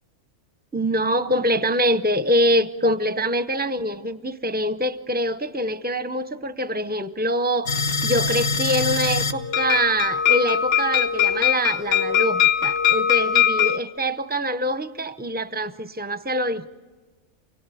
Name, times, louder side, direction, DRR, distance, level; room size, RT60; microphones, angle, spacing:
voice 1, 0.7-7.7 8.0-16.7, equal, 10° right, 0.4 m, -24 dB
sound 1, 7.7-13.8, left 8 dB, 55° left, 1.5 m, -21 dB
29.0 x 17.5 x 9.1 m
omnidirectional pair, 1.3 m